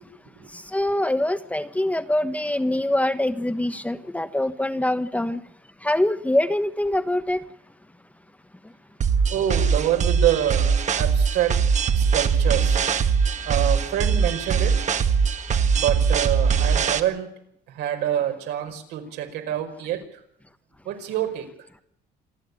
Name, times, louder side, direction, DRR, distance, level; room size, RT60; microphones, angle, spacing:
voice 1, 0.5-5.4 5.8-7.4, left 1 dB, 10° left, 1.2 m, -24 dB
sound 1, 9.0-17.0, right 6 dB, 45° right, 1.8 m, -21 dB
voice 2, 9.3-11.5 11.9-12.8 13.5-14.7 15.7-17.3 17.7-20.0 20.8-21.5, right 11 dB, 85° right, 5.1 m, -26 dB
27.0 x 11.5 x 9.8 m
cardioid pair, 110°, 17 cm